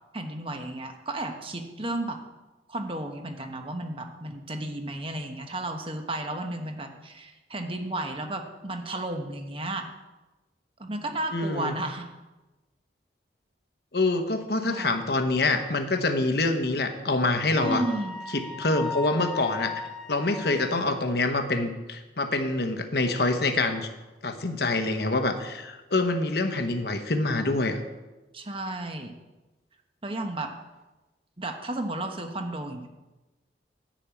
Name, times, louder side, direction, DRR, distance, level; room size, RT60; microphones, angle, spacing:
voice 1, 0.1-2.2 2.7-9.9 10.8-12.1 14.7-14.9 17.5-18.2 28.3-29.1 30.0-30.5 31.4-32.9, right 1 dB, 30° right, 5 dB, 1.0 m, -33 dB
voice 2, 11.3-11.7 13.9-17.8 18.3-19.8 20.1-23.9 24.2-27.8, left 2 dB, 60° left, 7 dB, 1.1 m, -26 dB
Wind instrument woodwind instrument, 17.6-21.1, left 4 dB, 5° left, 1.0 m, -37 dB
10.0 x 6.2 x 8.3 m, 1.1 s
head